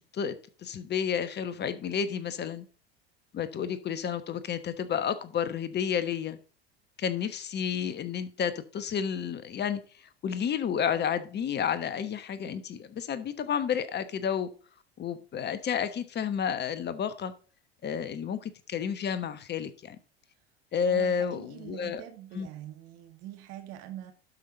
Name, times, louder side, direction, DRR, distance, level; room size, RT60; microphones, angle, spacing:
voice 1, 0.1-2.6 3.3-6.4 7.0-14.5 15.0-17.3 17.8-20.0 20.7-22.0 22.3-22.5, left 7 dB, 35° left, 1.2 m, -31 dB
voice 2, 20.9-24.1, right 12 dB, 55° right, 2.0 m, -44 dB
12.0 x 5.7 x 4.0 m
hypercardioid pair, 80°, 31 cm